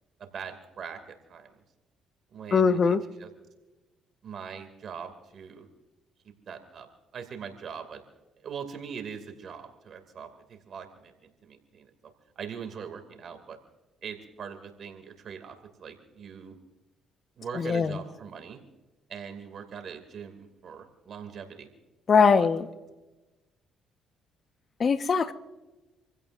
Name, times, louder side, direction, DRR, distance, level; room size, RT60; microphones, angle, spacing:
voice 1, 0.2-1.6 2.3-3.3 4.2-5.7 6.5-6.9 7.1-8.0 8.4-11.1 11.4-11.9 12.4-13.6 14.0-16.5 17.4-18.6 19.1-21.7 22.2-22.5, right 7 dB, 60° right, 7 dB, 2.5 m, -41 dB
voice 2, 2.5-3.0 17.5-18.0 22.1-22.7 24.8-25.3, left 5 dB, 45° left, 9 dB, 1.3 m, -21 dB
27.5 x 16.0 x 2.6 m, 1.1 s
supercardioid pair, 65°, 0 cm